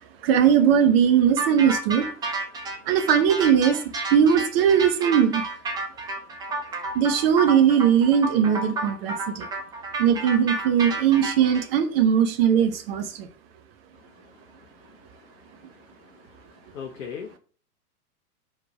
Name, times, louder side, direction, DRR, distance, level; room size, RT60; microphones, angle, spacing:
voice 1, 0.2-2.1 2.8-3.8 4.1-5.4 6.9-9.5 10.0-13.3, right 8 dB, 40° right, 1.0 m, -20 dB
sound 1, 1.4-11.6, right 2 dB, 10° right, 0.6 m, -31 dB
voice 2, 16.7-17.4, left 7 dB, 55° left, 1.1 m, -36 dB
4.8 x 4.5 x 6.0 m
figure-of-eight pair, 105°, 47 cm